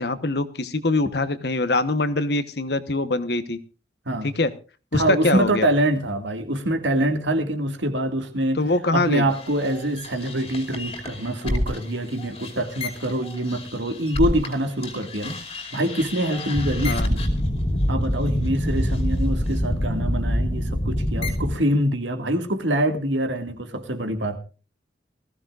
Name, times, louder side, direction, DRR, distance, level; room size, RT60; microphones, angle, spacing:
voice 1, 0.0-3.6 4.2-4.5 4.9-5.7 8.5-9.3 16.8-17.1, left 2 dB, 65° left, 11 dB, 1.2 m, -23 dB
voice 2, 4.9-8.6 8.9-15.4 15.7-17.3 17.9-24.4, right 1 dB, 85° right, 6 dB, 2.2 m, -25 dB
sound 1, 9.3-14.6 14.8-21.5, left 1 dB, 35° left, 2.7 m, -27 dB
19.0 x 15.5 x 2.5 m, 0.35 s
head